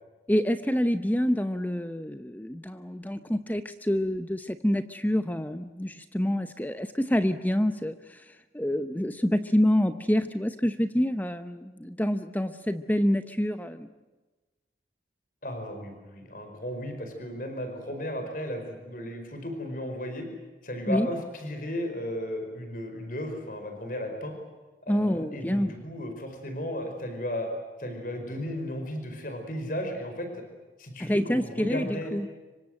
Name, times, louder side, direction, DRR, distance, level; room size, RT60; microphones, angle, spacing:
voice 1, 0.3-13.9 20.9-21.1 24.9-25.8 31.0-32.3, equal, 10° left, 10 dB, 0.7 m, -27 dB
voice 2, 15.4-20.3 20.6-24.3 24.8-27.5 27.8-30.3 30.8-32.1, left 1 dB, 50° left, 5 dB, 5.0 m, -35 dB
26.5 x 24.0 x 7.8 m, 1.2 s
head